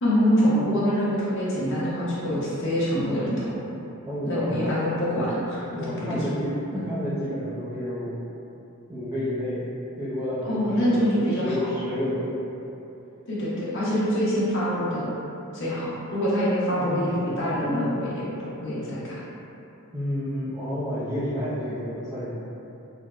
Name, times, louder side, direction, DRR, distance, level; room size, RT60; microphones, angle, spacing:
voice 1, 0.0-3.6 4.2-6.2 6.7-6.9 10.4-11.7 13.3-15.1 15.5-19.2, equal, 60° left, -8 dB, 0.8 m, -25 dB
voice 2, 4.1-4.7 5.7-8.1 8.9-12.4 16.8-17.1 19.9-22.3, equal, 15° right, -13 dB, 0.4 m, -30 dB
3.3 x 2.1 x 2.4 m, 2.8 s
head